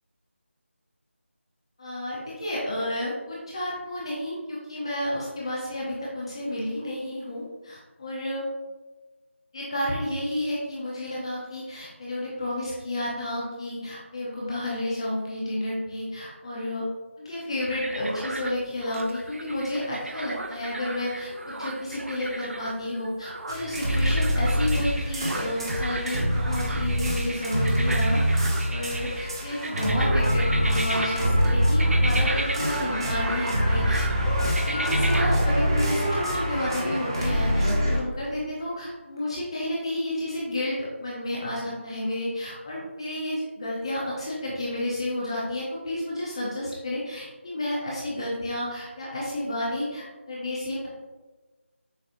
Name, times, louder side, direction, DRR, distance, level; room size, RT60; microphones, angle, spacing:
voice 1, 1.8-8.5 9.5-16.8 17.2-34.4 34.7-50.9, left 1 dB, 25° left, -6 dB, 0.7 m, -31 dB
sound 1, 17.6-35.4, right 2 dB, 75° right, 0.5 m, -35 dB
sound 2, 23.5-38.0, equal, 20° right, 0.5 m, -25 dB
6.4 x 2.9 x 2.6 m, 1.2 s
figure-of-eight pair, 170°, 7 cm